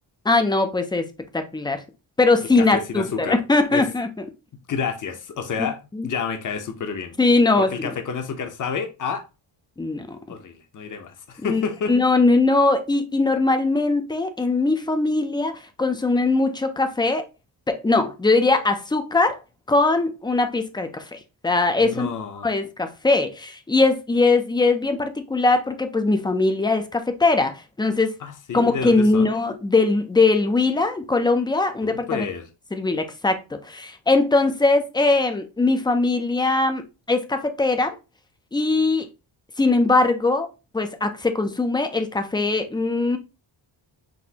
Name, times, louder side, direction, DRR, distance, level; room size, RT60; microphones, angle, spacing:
voice 1, 0.2-1.1 1.3-1.8 2.2-4.2 5.6-5.7 5.9-6.1 7.2-7.9 9.8-10.2 11.4-11.6 11.9-17.3 17.7-19.4 19.7-22.1 22.4-28.1 28.5-32.3 32.7-38.0 38.5-39.1 39.6-40.5 40.7-43.2, left 3 dB, 10° left, 0.3 m, -21 dB
voice 2, 2.6-3.4 3.7-3.9 4.7-7.1 7.6-9.3 10.3-11.9 21.8-22.5 28.2-29.3 31.8-32.5, left 6 dB, 40° left, 0.7 m, -29 dB
6.1 x 2.5 x 2.8 m
wide cardioid pair, 170°, 48 cm